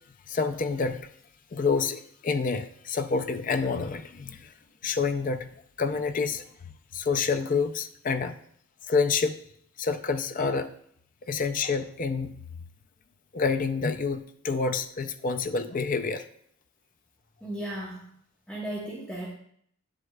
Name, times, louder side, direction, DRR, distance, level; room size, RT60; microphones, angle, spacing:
voice 1, 0.3-1.1 1.5-4.5 4.8-5.5 5.8-6.4 6.9-8.3 8.9-9.4 9.8-10.7 11.3-12.3 13.3-16.3, left 4 dB, 35° left, 8 dB, 0.4 m, -28 dB
voice 2, 17.4-18.1 18.5-19.3, right 1 dB, 5° left, -5 dB, 1.0 m, -35 dB
9.2 x 7.9 x 2.3 m, 0.67 s
head